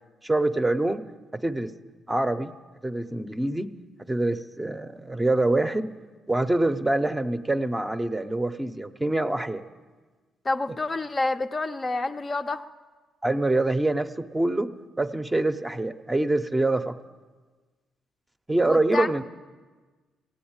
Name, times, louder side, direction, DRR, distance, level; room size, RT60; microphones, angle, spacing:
voice 1, 0.2-1.0 1.3-1.7 2.1-2.5 2.8-3.7 4.1-5.9 6.3-9.6 13.2-17.0 18.5-19.2, right 2 dB, 15° right, 8 dB, 0.7 m, -25 dB
voice 2, 10.4-12.6 18.7-19.1, left 2 dB, 30° left, 6 dB, 0.5 m, -28 dB
16.5 x 8.7 x 8.7 m, 1.4 s
cardioid pair, 90°, 0 cm